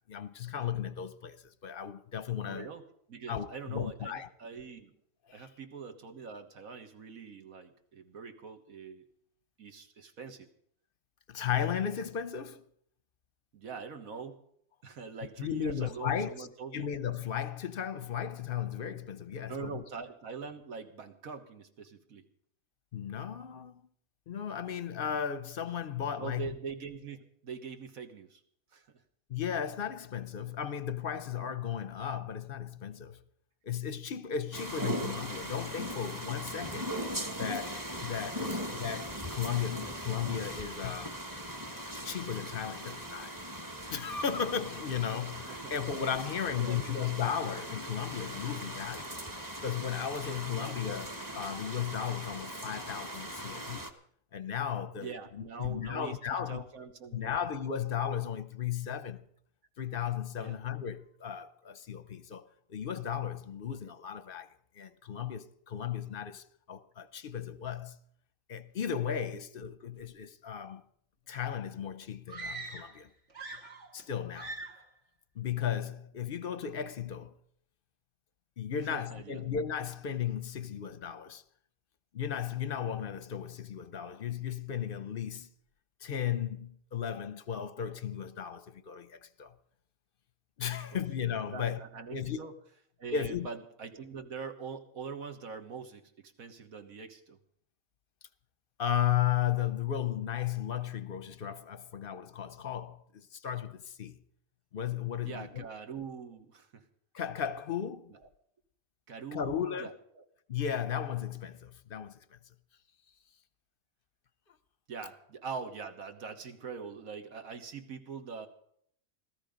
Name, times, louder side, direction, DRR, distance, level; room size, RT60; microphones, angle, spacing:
voice 1, 0.1-2.7 3.3-4.3 5.3-5.5 11.3-12.6 15.4-16.5 16.7-19.8 22.9-23.8 24.3-26.5 29.3-33.2 33.6-36.9 37.4-41.2 42.0-43.3 43.9-49.1 49.6-53.8 54.3-56.7 57.1-59.2 59.8-64.5 64.7-68.0 68.5-70.8 71.3-73.1 73.9-74.5 75.4-77.3 78.6-81.4 82.1-85.5 86.0-89.5 90.6-91.8 92.1-92.4 93.1-93.5 98.8-104.2 104.7-105.7 107.1-108.1 109.3-109.9 110.5-112.2, left 8 dB, 50° left, 0.7 m, -35 dB
voice 2, 2.5-2.8 3.1-5.0 5.3-9.1 9.6-10.5 13.5-14.4 14.8-16.9 19.5-22.3 26.2-28.4 28.7-28.9 38.4-38.6 45.5-45.8 46.6-47.0 50.5-50.8 54.9-57.4 60.4-60.6 78.9-79.4 90.9-91.0 91.5-92.5 93.0-97.4 105.2-106.9 108.1-108.2 109.1-109.9 110.2-110.3 114.9-118.5, right 5 dB, 85° right, 1.8 m, -43 dB
sound 1, 34.5-53.9, equal, 15° right, 1.1 m, -39 dB
sound 2, 72.3-73.0 73.3-74.1 74.3-74.9, right 3 dB, 60° right, 2.2 m, -42 dB
17.0 x 13.5 x 5.2 m
omnidirectional pair, 1.4 m